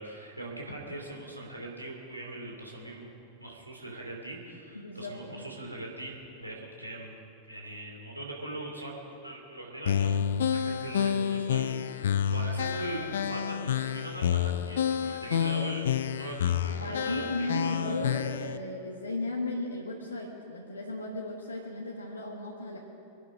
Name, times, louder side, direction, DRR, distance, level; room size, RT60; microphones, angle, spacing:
voice 1, 0.0-3.1 3.4-7.2 7.5-9.0 9.2-10.2 10.5-17.9, right 1 dB, 85° right, -2 dB, 3.0 m, -41 dB
voice 2, 4.7-5.5 16.7-22.8, left 2 dB, 80° left, -1 dB, 1.4 m, -35 dB
sound 1, 9.9-18.6, left 8 dB, 60° left, 0.5 m, -29 dB
24.5 x 11.0 x 5.1 m, 2.6 s
figure-of-eight pair, 90°, 0 cm